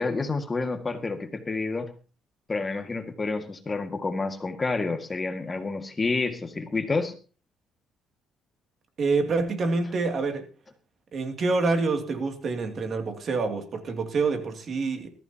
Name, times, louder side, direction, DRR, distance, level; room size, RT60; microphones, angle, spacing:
voice 1, 0.0-1.9 2.5-7.1, left 3 dB, 25° left, 1.8 m, -29 dB
voice 2, 9.0-10.5 11.1-15.1, right 3 dB, 45° right, 2.5 m, -27 dB
20.5 x 14.0 x 2.9 m
cardioid pair, 110°, 0 cm